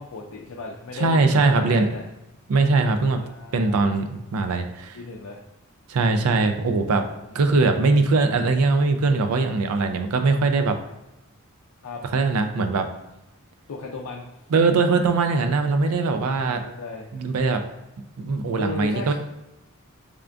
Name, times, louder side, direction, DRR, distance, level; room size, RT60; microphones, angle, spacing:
voice 1, 0.0-2.0 3.2-4.0 4.9-5.4 7.2-7.3 11.8-12.0 13.7-14.3 16.4-17.1 18.6-19.1, left 3 dB, 75° left, 0 dB, 0.4 m, -35 dB
voice 2, 0.9-2.0 2.5-3.2 3.5-5.0 5.9-7.1 7.3-10.8 12.1-12.9 14.5-16.6 17.1-17.6 18.2-19.1, right 3 dB, 80° right, 7 dB, 0.4 m, -21 dB
3.6 x 3.3 x 2.4 m, 0.94 s
head